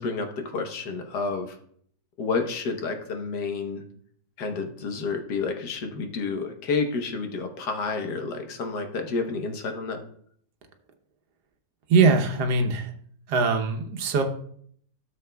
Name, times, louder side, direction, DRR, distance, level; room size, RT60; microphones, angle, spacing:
voice 1, 0.0-1.6 2.2-3.8 4.4-10.0, left 4 dB, 85° left, 5 dB, 1.6 m, -30 dB
voice 2, 11.9-12.9 13.3-14.2, right 4 dB, 80° right, 5 dB, 1.5 m, -21 dB
13.0 x 7.1 x 2.3 m, 0.63 s
omnidirectional pair, 1.7 m